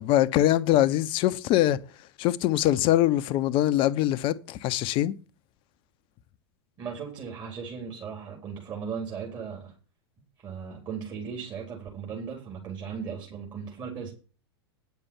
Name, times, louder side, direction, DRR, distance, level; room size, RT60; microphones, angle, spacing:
voice 1, 0.0-1.8 2.2-5.1, left 13 dB, 40° left, 0.8 m, -23 dB
voice 2, 6.8-9.7 10.4-14.1, right 6 dB, 30° right, 4.2 m, -37 dB
9.6 x 6.9 x 7.2 m
figure-of-eight pair, 90°, 14 cm